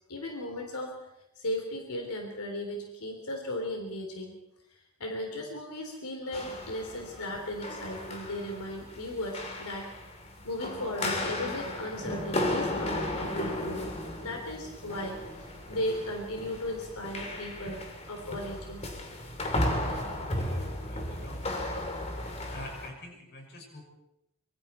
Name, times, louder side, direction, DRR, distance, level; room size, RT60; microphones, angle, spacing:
voice 1, 0.1-1.0 1.4-4.3 4.7-9.9 10.4-17.8 18.1-18.9, left 1 dB, 85° left, 2 dB, 3.5 m, -36 dB
sound 1, 6.3-22.9, left 1 dB, 30° left, 2.9 m, -35 dB
voice 2, 20.3-21.9 22.5-23.8, left 1 dB, 45° left, 2 dB, 6.0 m, -47 dB
25.5 x 23.5 x 4.4 m, 0.85 s
head